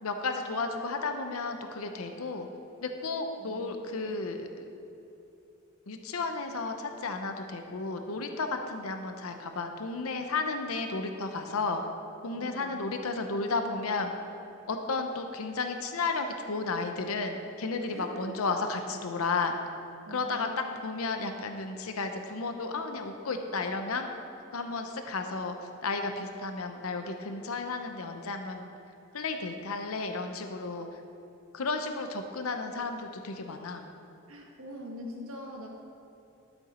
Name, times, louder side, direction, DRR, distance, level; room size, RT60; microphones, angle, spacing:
voice 1, 0.0-2.5 2.8-4.6 5.9-11.8 12.2-14.1 14.7-19.6 20.1-20.5 20.8-24.1 24.5-25.5 25.8-28.6 29.1-30.9 31.5-33.8, left 3 dB, 90° left, 6 dB, 0.7 m, -33 dB
voice 2, 3.4-4.1 12.3-12.7 17.9-18.2 20.0-20.7 34.3-35.7, equal, 75° right, 0 dB, 1.6 m, -43 dB
12.5 x 7.1 x 4.3 m, 2.9 s
head